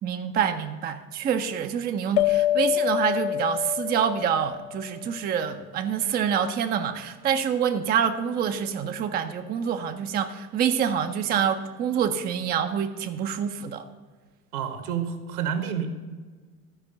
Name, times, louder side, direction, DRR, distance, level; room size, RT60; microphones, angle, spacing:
voice 1, 0.0-13.9, right 8 dB, 20° right, 7 dB, 0.5 m, -26 dB
sound 1, 2.2-5.1, left 12 dB, 50° left, 0.4 m, -26 dB
voice 2, 14.5-15.9, right 8 dB, 65° right, 8 dB, 1.4 m, -29 dB
13.0 x 5.1 x 6.6 m, 1.4 s
figure-of-eight pair, 65°, 47 cm